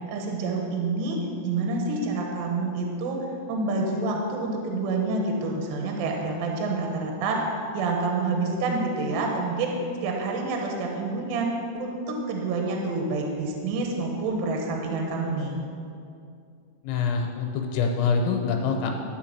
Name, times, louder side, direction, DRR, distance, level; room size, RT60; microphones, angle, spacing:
voice 1, 0.1-7.4 7.7-9.7 10.0-15.6, right 3 dB, 75° right, 1 dB, 3.0 m, -28 dB
voice 2, 16.8-18.9, left 5 dB, 85° left, 2 dB, 3.0 m, -25 dB
12.5 x 4.6 x 7.5 m, 2.4 s
omnidirectional pair, 5.4 m